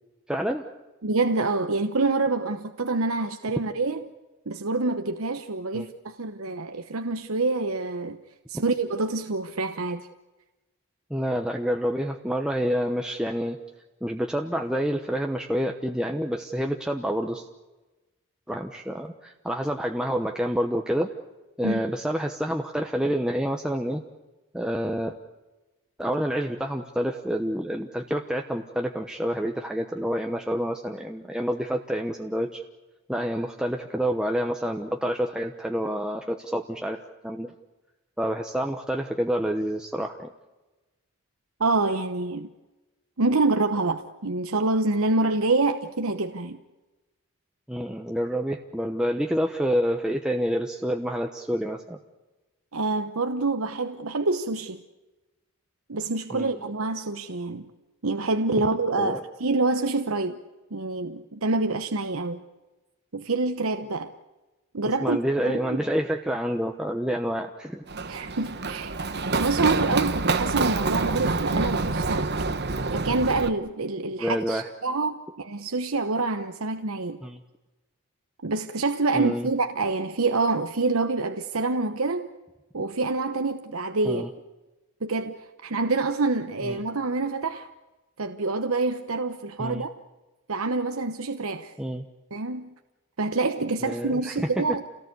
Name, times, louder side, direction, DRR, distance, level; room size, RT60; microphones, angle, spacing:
voice 1, 0.3-0.6 5.7-5.9 11.1-13.6 14.0-17.5 18.5-21.1 21.6-24.0 24.5-25.1 26.0-32.6 33.1-37.5 38.2-40.3 47.7-52.0 56.3-56.6 59.0-59.2 65.0-67.8 74.2-74.7 77.2-77.4 79.1-79.5 84.0-84.3 86.6-86.8 89.6-89.8 91.8-92.1 93.8-94.5, equal, 5° right, 1.0 m, -28 dB
voice 2, 1.0-4.0 4.5-8.2 8.5-10.1 21.6-21.8 41.6-42.5 43.2-46.6 52.7-54.8 55.9-57.7 58.0-60.4 60.7-62.4 63.1-64.1 64.7-65.8 68.1-69.0 69.4-72.3 72.9-77.2 78.4-82.3 82.7-84.2 85.0-87.7 88.2-89.9 90.5-91.8 92.3-92.7 93.2-94.8, right 3 dB, 70° right, 1.0 m, -26 dB
Run, 67.9-73.5, right 3 dB, 45° right, 1.1 m, -27 dB
29.0 x 18.0 x 8.3 m
head